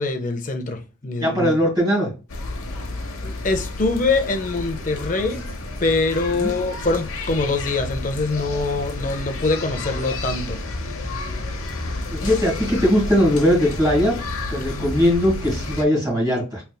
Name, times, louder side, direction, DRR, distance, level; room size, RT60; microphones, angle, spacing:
voice 1, 0.0-1.5 3.2-5.4 5.8-10.6 14.7-14.9, left 3 dB, 35° left, 0.5 m, -24 dB
voice 2, 1.2-2.1 6.4-6.5 12.1-14.2 14.5-16.6, equal, 20° right, 2.0 m, -19 dB
sound 1, 2.3-15.9, left 2 dB, 80° left, 0.8 m, -30 dB
4.0 x 3.3 x 2.2 m
head